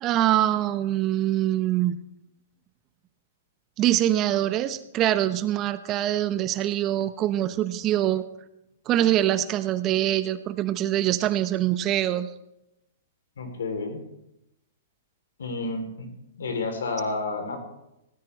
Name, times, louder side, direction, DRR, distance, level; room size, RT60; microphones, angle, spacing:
voice 1, 0.0-2.0 3.8-8.3 8.9-12.3, right 13 dB, 30° right, 13 dB, 0.8 m, -24 dB
voice 2, 13.4-14.0 15.4-16.1 16.4-17.6, left 3 dB, 80° left, 5 dB, 3.4 m, -30 dB
17.0 x 14.5 x 3.3 m, 0.87 s
hypercardioid pair, 130°, 0 cm